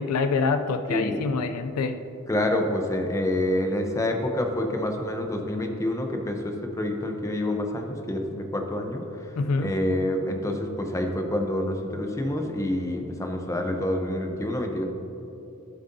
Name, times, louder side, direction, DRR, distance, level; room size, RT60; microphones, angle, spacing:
voice 1, 0.0-2.0 9.4-9.7, left 4 dB, 85° left, 9 dB, 0.4 m, -26 dB
voice 2, 2.3-9.3 9.6-14.8, left 1 dB, 15° left, 3 dB, 0.7 m, -27 dB
12.5 x 7.5 x 2.7 m, 2.9 s
head